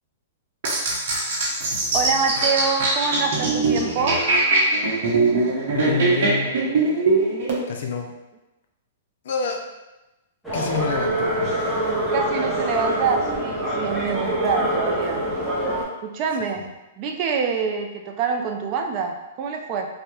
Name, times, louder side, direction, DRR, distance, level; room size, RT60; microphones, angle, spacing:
sound 1, 0.6-7.6, right 3 dB, 60° right, 0.7 m, -21 dB
voice 1, 1.9-4.2 12.1-15.3 16.0-16.6 17.0-19.9, right 5 dB, 40° right, 3 dB, 0.3 m, -25 dB
voice 2, 5.7-6.5 7.7-8.1 9.2-9.6 10.5-12.0 16.6-16.7, left 5 dB, 70° left, 3 dB, 0.4 m, -28 dB
sound 2, 10.4-15.8, right 1 dB, ahead, 0.6 m, -25 dB
2.2 x 2.0 x 2.9 m, 1.0 s
hypercardioid pair, 135°, 0 cm